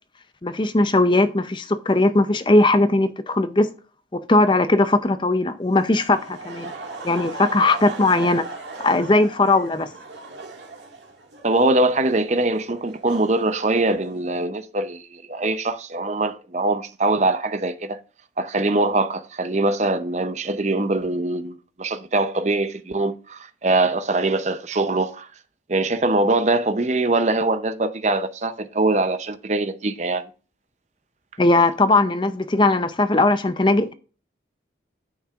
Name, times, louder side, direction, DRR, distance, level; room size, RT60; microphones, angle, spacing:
voice 1, 0.4-3.7 4.1-6.7 7.0-8.5 8.8-9.9 31.4-33.9, left 2 dB, 25° left, 0.5 m, -19 dB
Laughter, 5.9-14.4, right 3 dB, 70° right, 1.9 m, -38 dB
voice 2, 11.4-18.0 18.4-25.3 25.7-30.3, right 2 dB, 35° right, 0.6 m, -22 dB
9.9 x 8.6 x 2.4 m
head